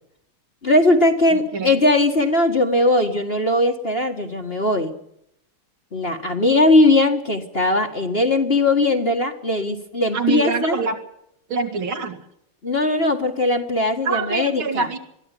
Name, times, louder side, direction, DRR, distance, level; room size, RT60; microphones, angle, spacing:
voice 1, 0.6-4.9 5.9-10.8 12.6-14.9, left 2 dB, 30° left, 4 dB, 1.8 m, -19 dB
voice 2, 10.1-11.0 11.5-12.2 14.0-15.0, right 5 dB, 65° right, 5 dB, 3.1 m, -24 dB
22.0 x 13.5 x 9.9 m, 0.75 s
omnidirectional pair, 2.4 m